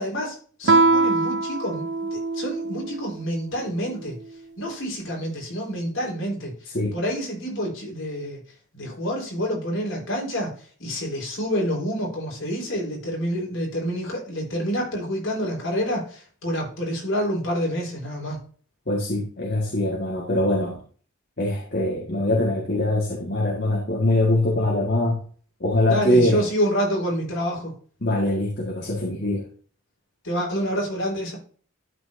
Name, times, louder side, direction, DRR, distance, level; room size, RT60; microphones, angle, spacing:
voice 1, 0.0-1.8 2.1-4.2 4.6-8.4 8.7-10.5 10.8-18.4 25.9-27.7 30.2-31.4, equal, 65° left, -2 dB, 4.3 m, -28 dB
Guitar, 0.6-3.1, right 3 dB, 55° right, 0.6 m, -22 dB
voice 2, 6.7-7.0 18.9-20.8 21.4-25.2 25.6-26.4 28.0-29.4, left 1 dB, 50° left, -3 dB, 1.8 m, -23 dB
12.5 x 5.5 x 2.7 m, 0.43 s
head